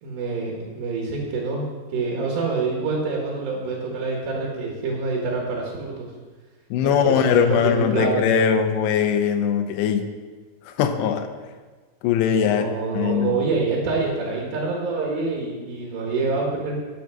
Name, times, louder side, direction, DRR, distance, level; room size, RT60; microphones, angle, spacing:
voice 1, 0.0-6.1 6.8-8.2 12.4-16.8, right 3 dB, 80° right, -2 dB, 3.8 m, -26 dB
voice 2, 6.7-10.1 10.7-11.3 12.0-12.7 12.9-13.4, left 8 dB, 85° left, 6 dB, 3.0 m, -21 dB
10.5 x 6.9 x 6.4 m, 1.4 s
omnidirectional pair, 4.9 m